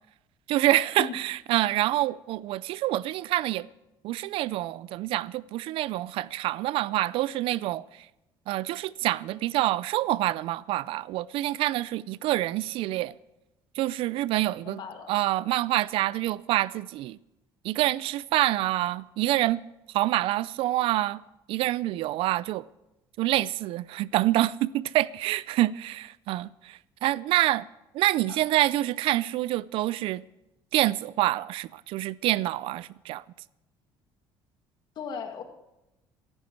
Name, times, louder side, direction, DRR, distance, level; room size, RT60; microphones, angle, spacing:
voice 1, 0.5-3.7 4.0-7.8 8.5-13.1 13.8-14.8 15.1-17.2 17.6-19.6 19.9-21.2 21.5-22.7 23.2-27.7 27.9-30.2 30.7-33.2, right 16 dB, 70° right, 0.4 m, -26 dB
voice 2, 14.6-15.1 28.2-28.4 35.0-35.4, left 6 dB, 50° left, 1.9 m, -36 dB
14.5 x 12.0 x 4.6 m
cardioid pair, 125°, 10 cm